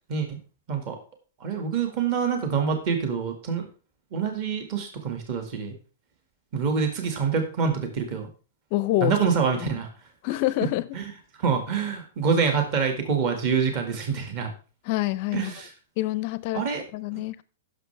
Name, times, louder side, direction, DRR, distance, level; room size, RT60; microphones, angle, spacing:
voice 1, 1.4-3.7 4.1-5.7 6.5-8.3 9.0-9.9 10.9-11.0 11.4-14.5 15.3-15.7 16.5-16.8 17.1-17.2, right 6 dB, 30° right, 1.8 m, -26 dB
voice 2, 8.7-9.2 9.6-9.7 10.2-10.9 14.8-15.5 16.0-16.6 16.9-17.4, left 16 dB, 35° left, 0.5 m, -26 dB
16.0 x 6.6 x 3.3 m
hypercardioid pair, 175°, 0 cm